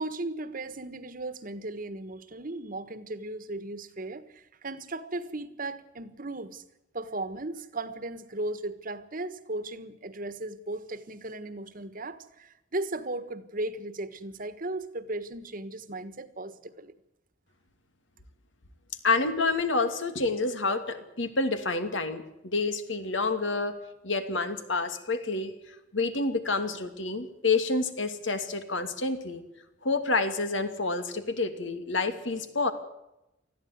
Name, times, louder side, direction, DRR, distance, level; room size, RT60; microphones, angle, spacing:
voice 1, 0.0-6.6 6.9-16.9, right 2 dB, 45° right, 13 dB, 1.5 m, -36 dB
voice 2, 19.0-23.8 24.0-25.5 25.9-29.4 29.8-32.7, left 3 dB, 80° left, 8 dB, 2.6 m, -28 dB
20.5 x 14.0 x 9.4 m, 0.90 s
head